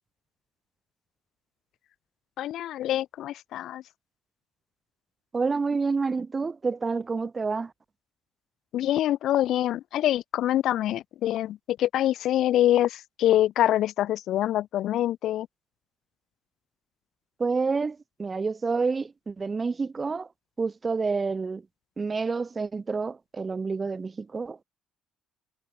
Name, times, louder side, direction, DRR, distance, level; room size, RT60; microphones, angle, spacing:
voice 1, 2.4-3.8 8.7-15.5, left 13 dB, 60° left, 0.5 m, -25 dB
voice 2, 5.3-7.7 17.4-20.3 20.6-21.7 22.0-24.6, right 4 dB, 20° right, 0.6 m, -28 dB
cardioid pair, 135°, 0 cm